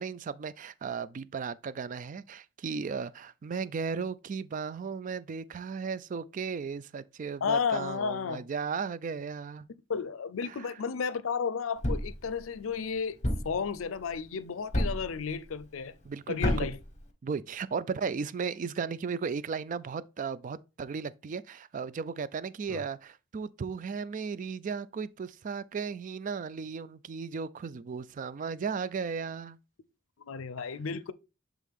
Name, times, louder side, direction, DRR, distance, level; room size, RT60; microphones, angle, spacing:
voice 1, 0.0-9.7 10.5-10.7 16.0-16.7 17.2-29.6, right 5 dB, 40° right, 0.3 m, -35 dB
voice 2, 7.4-8.5 9.9-13.2 13.4-16.0 16.3-16.8 22.7-22.8 30.2-31.1, left 6 dB, 90° left, 0.5 m, -32 dB
Thump thud, 11.8-12.2 13.2-13.6 14.7-15.1 16.4-16.8, equal, 40° left, 1.4 m, -28 dB
7.5 x 3.6 x 3.5 m
head